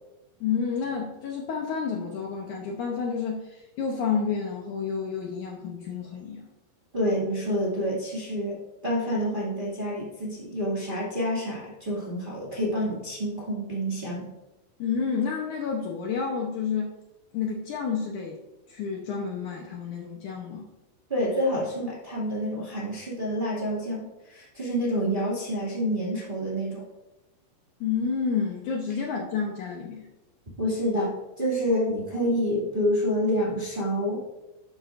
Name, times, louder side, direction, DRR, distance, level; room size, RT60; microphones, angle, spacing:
voice 1, 0.4-6.5 14.8-16.9 17.3-18.4 18.7-20.7 27.8-30.1, left 6 dB, 70° left, 0 dB, 2.0 m, -30 dB
voice 2, 6.9-14.3 21.1-26.9 30.6-34.3, equal, 20° right, -6 dB, 1.7 m, -28 dB
12.0 x 9.0 x 2.6 m, 1.0 s
omnidirectional pair, 4.3 m